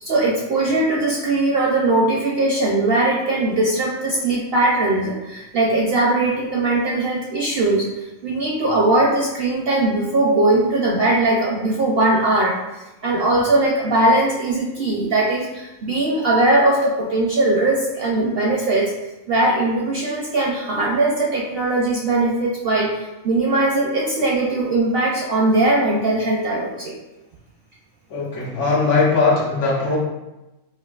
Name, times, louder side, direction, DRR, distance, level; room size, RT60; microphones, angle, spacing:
voice 1, 0.0-12.6 13.0-18.9 19.3-27.0, right 2 dB, 65° right, -3 dB, 0.6 m, -20 dB
voice 2, 28.1-30.0, left 3 dB, 65° left, -4 dB, 1.0 m, -19 dB
4.5 x 2.4 x 2.3 m, 1.0 s
omnidirectional pair, 1.4 m